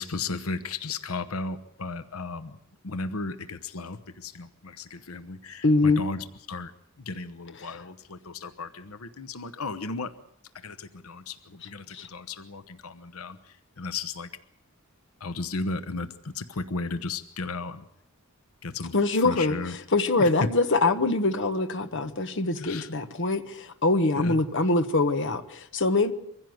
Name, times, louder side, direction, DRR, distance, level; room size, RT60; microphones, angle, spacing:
voice 1, 0.0-2.6 2.8-6.7 7.0-10.1 10.6-14.3 15.2-17.8 18.6-18.9 19.2-19.8 20.2-20.3 22.6-22.9 24.1-24.4, left 3 dB, 85° left, 1.0 m, -35 dB
voice 2, 5.6-6.0 7.6-7.7 11.9-12.1 18.9-26.1, left 3 dB, 60° left, 1.3 m, -24 dB
24.0 x 15.5 x 7.8 m
head